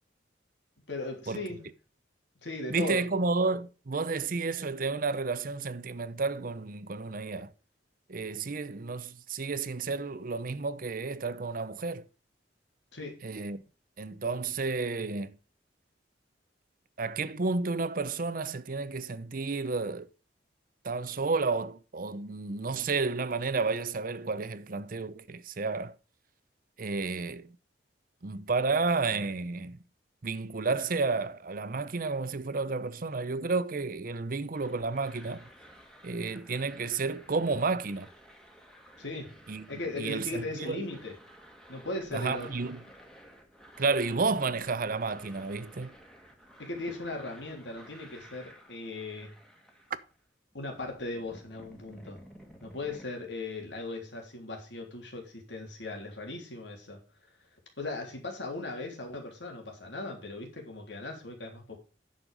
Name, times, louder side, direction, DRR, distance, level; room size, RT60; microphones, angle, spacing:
voice 1, 0.9-1.7 2.4-3.1 12.9-13.2 39.0-39.4 39.7-41.2 41.7-42.7 46.6-49.3 50.5-52.2 52.6-57.0 57.8-61.8, left 2 dB, 70° left, 3.4 m, -38 dB
voice 2, 2.7-7.5 8.1-12.0 13.2-13.6 14.0-15.4 17.0-20.1 20.8-26.0 26.8-27.5 28.2-29.8 30.2-35.5 36.0-38.1 39.5-40.9 42.1-42.8 43.8-45.9, right 4 dB, 50° right, 0.7 m, -31 dB
sound 1, 34.5-50.3 50.5-53.1, equal, 5° left, 1.7 m, -54 dB
9.9 x 6.6 x 5.3 m
head